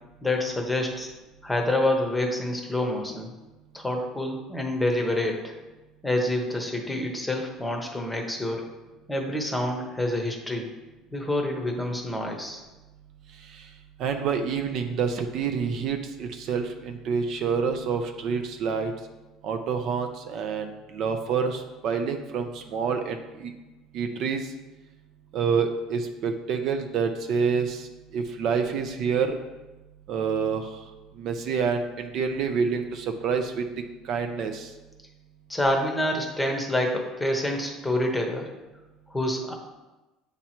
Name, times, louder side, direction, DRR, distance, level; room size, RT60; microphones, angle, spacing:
voice 1, 0.2-1.1 1.4-3.3 3.7-5.5 6.0-8.7 9.1-10.7 11.1-12.6 35.5-38.5 39.1-39.5, left 1 dB, 5° left, 2 dB, 0.9 m, -27 dB
voice 2, 14.0-18.9 19.4-23.5 23.9-24.5 25.3-27.9 28.1-29.4 30.1-30.7 31.2-33.6 34.1-34.7, right 6 dB, 55° right, 6 dB, 0.5 m, -27 dB
8.1 x 3.0 x 4.3 m, 1.1 s
cardioid pair, 130°, 0 cm